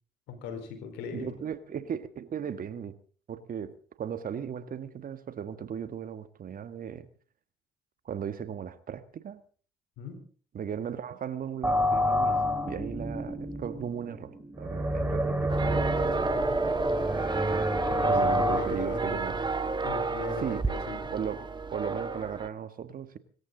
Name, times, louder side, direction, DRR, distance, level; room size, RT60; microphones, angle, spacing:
voice 1, 0.3-1.3 10.0-10.2 17.9-19.4 19.8-21.0, left 5 dB, 75° left, 4.5 m, -39 dB
voice 2, 1.1-3.0 3.3-7.1 8.0-9.4 10.5-12.4 12.7-16.7 18.1-19.4 20.4-20.7 21.1-23.2, right 8 dB, 50° right, 1.6 m, -37 dB
sound 1, 11.6-18.6, equal, 10° right, 4.2 m, -28 dB
sound 2, 15.5-22.5, right 4 dB, 25° right, 1.8 m, -31 dB
25.0 x 14.0 x 3.9 m
hypercardioid pair, 50°, 18 cm